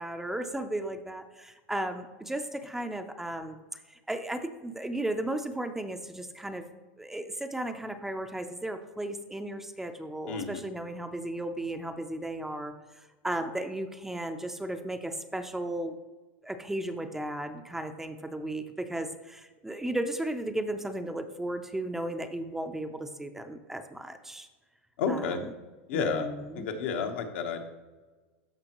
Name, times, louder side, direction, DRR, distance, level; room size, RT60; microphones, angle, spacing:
voice 1, 0.0-3.6 4.1-6.6 7.0-12.7 13.2-16.0 16.4-24.5 25.1-25.5 25.9-26.7, right 1 dB, 5° right, 7 dB, 0.5 m, -35 dB
voice 2, 10.3-10.7 25.0-25.4 25.9-26.3 26.5-27.7, left 5 dB, 75° left, 4 dB, 1.0 m, -31 dB
13.5 x 5.1 x 3.0 m, 1.3 s
supercardioid pair, 130°, 7 cm